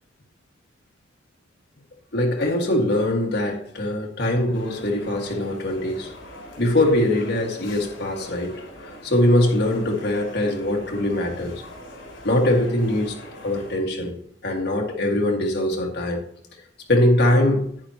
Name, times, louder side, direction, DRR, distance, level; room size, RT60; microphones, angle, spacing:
voice 1, 2.1-6.1 6.6-8.6 8.9-11.6 12.2-13.2 13.4-14.2 14.4-16.3 16.9-17.8, left 1 dB, 60° left, 1.8 m, -22 dB
sound 1, 4.5-13.8, left 1 dB, 80° left, 4.0 m, -42 dB
10.5 x 9.2 x 2.9 m
head